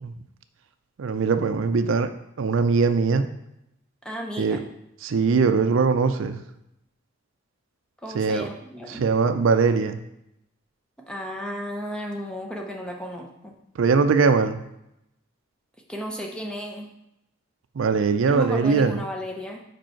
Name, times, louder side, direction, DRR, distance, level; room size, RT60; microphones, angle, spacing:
voice 1, 1.0-2.1 2.4-3.3 4.4-4.6 5.0-6.4 8.1-8.5 8.9-10.0 13.8-14.7 17.8-19.0, right 5 dB, 65° right, 9 dB, 0.4 m, -21 dB
voice 2, 4.0-4.7 8.0-9.0 11.1-13.5 15.9-16.9 18.2-19.6, equal, 5° left, 1 dB, 0.6 m, -34 dB
5.1 x 4.6 x 4.4 m, 0.83 s
head